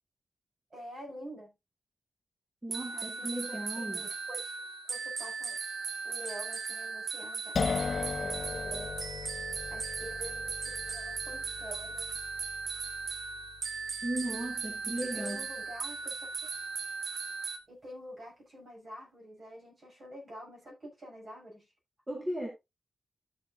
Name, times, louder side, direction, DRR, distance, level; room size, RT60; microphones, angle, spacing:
voice 1, 0.7-1.5 2.9-4.6 4.9-5.6 6.0-8.9 9.7-12.1 15.0-16.5 17.7-21.7, equal, 40° right, 6.8 m, -47 dB
voice 2, 2.6-4.1 14.0-15.5 22.1-22.5, right 1 dB, 15° right, 1.9 m, -36 dB
sound 1, 2.7-17.6, right 5 dB, 75° right, 1.4 m, -38 dB
sound 2, 7.5-15.1, left 5 dB, 50° left, 0.5 m, -38 dB
13.0 x 7.2 x 2.7 m
wide cardioid pair, 155°, 0 cm